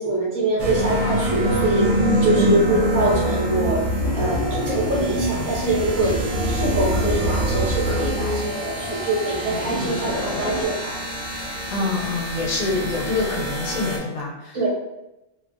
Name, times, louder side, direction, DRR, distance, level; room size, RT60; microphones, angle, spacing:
voice 1, 0.0-1.9 2.2-3.9 4.1-11.0 14.5-14.7, right 2 dB, 20° right, -7 dB, 0.6 m, -24 dB
sound 1, 0.6-14.0, right 1 dB, 70° right, 0.9 m, -25 dB
voice 2, 2.3-2.7 11.7-14.7, left 3 dB, 70° left, -1 dB, 1.0 m, -26 dB
sound 2, 4.0-10.7, left 1 dB, 55° left, 0.6 m, -30 dB
2.5 x 2.0 x 2.6 m, 0.93 s
omnidirectional pair, 1.5 m